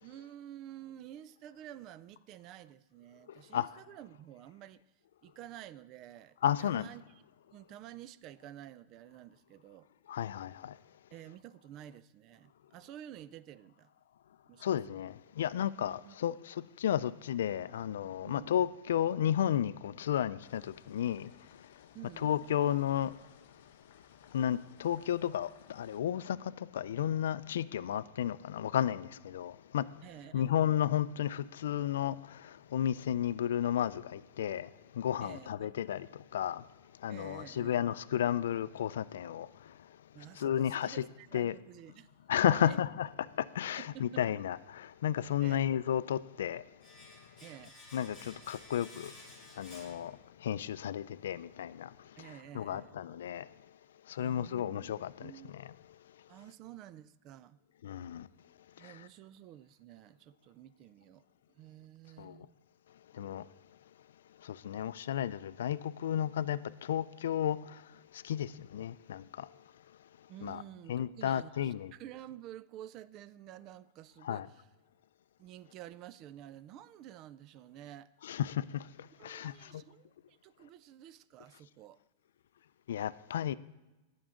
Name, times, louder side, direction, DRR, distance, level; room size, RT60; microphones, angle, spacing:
voice 1, 0.0-4.8 5.2-7.0 7.5-9.9 11.1-13.9 14.5-14.6 15.9-16.2 18.2-18.5 21.9-22.5 30.0-30.5 35.2-35.7 37.1-37.9 40.1-42.1 42.5-42.8 43.8-44.2 45.4-45.7 47.4-47.8 52.2-53.0 54.2-55.5 56.3-57.6 58.8-61.3 61.5-62.6 70.3-74.7 75.4-78.1 79.2-82.0, right 12 dB, 30° right, 0.3 m, -50 dB
voice 2, 6.4-6.9 10.1-10.7 14.6-21.3 22.2-23.1 24.3-29.8 30.3-36.6 37.0-39.5 40.4-41.1 41.3-41.5 42.3-46.6 47.9-49.1 49.6-51.9 52.2-53.5 54.1-55.6 57.8-58.3 58.8-58.9 62.2-62.4 63.2-63.4 64.4-67.8 68.1-69.5 70.4-70.6 70.9-71.9 74.2-74.5 78.2-78.8 79.2-79.7 82.9-83.5, left 10 dB, 90° left, 0.4 m, -33 dB
sound 1, 20.4-26.0, left 8 dB, 55° left, 1.0 m, -62 dB
Domestic sounds home sounds, 46.8-50.6 50.9-51.0, left 2 dB, ahead, 2.1 m, -54 dB
18.0 x 6.2 x 3.7 m
supercardioid pair, 165°, 0 cm